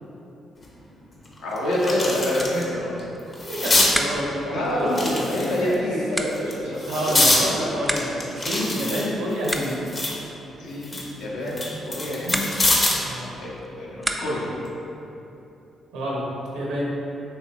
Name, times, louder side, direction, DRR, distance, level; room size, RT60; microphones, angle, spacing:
sound 1, 0.6-0.7 1.2-2.6 3.0-3.9 4.9-5.7 6.3-7.4 8.0-10.2 10.6-13.1 14.4-14.7, left 2 dB, 40° left, 0.6 m, -24 dB
voice 1, 1.4-2.9 4.5-7.2 10.6-12.4 13.4-14.5, left 1 dB, 80° left, -5 dB, 0.6 m, -27 dB
sound 2, 2.3-14.6, right 1 dB, 10° right, 0.3 m, -35 dB
voice 2, 3.4-5.3 6.1-6.5 6.9-9.8 13.0-13.4 15.9-16.2 16.5-16.8, equal, 85° right, -4 dB, 0.6 m, -28 dB
3.1 x 3.1 x 2.8 m, 3.0 s
hypercardioid pair, 50°, 0 cm